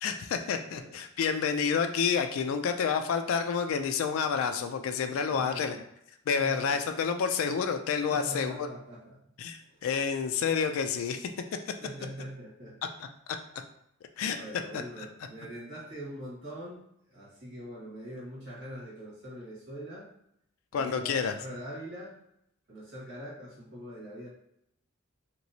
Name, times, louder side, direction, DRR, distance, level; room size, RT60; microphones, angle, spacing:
voice 1, 0.0-5.7 6.3-8.7 9.4-11.3 11.7-11.8 13.0-13.1 14.2-14.4 15.0-15.1 20.7-21.3, left 6 dB, 75° left, 7 dB, 0.3 m, -29 dB
voice 2, 0.6-1.0 5.3-5.8 6.4-6.7 8.1-9.2 9.7-9.8 11.8-12.8 14.3-20.1 20.7-22.2 22.7-24.3, equal, 60° right, -6 dB, 1.5 m, -43 dB
3.0 x 2.9 x 2.7 m, 0.77 s
head